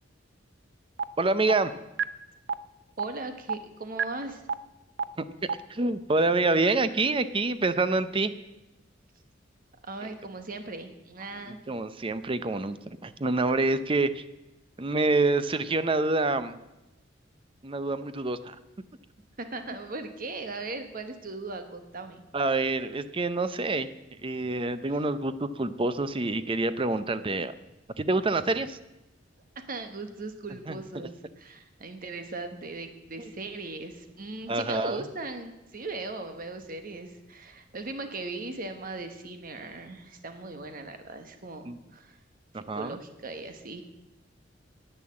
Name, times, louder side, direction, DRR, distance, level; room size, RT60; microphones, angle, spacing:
sound 1, 1.0-1.1 1.5-1.6 2.0-2.1 2.5-2.6 3.0-3.1 3.5-3.6 4.0-4.1 4.5-4.6 5.0-5.1 5.5-5.6, right 6 dB, 70° right, 0.6 m, -26 dB
voice 1, 1.2-1.7 5.7-8.3 11.5-12.8 13.0-14.2 14.8-16.6 17.6-18.6 22.3-23.9 24.2-27.5 28.0-28.8 30.7-30.8 33.2-33.3 34.5-35.0 41.7-41.8 42.5-43.0, right 2 dB, 30° right, 13 dB, 0.6 m, -27 dB
voice 2, 3.0-4.4 9.8-11.6 19.4-22.2 29.7-42.2 42.7-43.8, right 3 dB, 50° right, 7 dB, 1.2 m, -38 dB
11.0 x 9.1 x 7.6 m, 0.98 s
head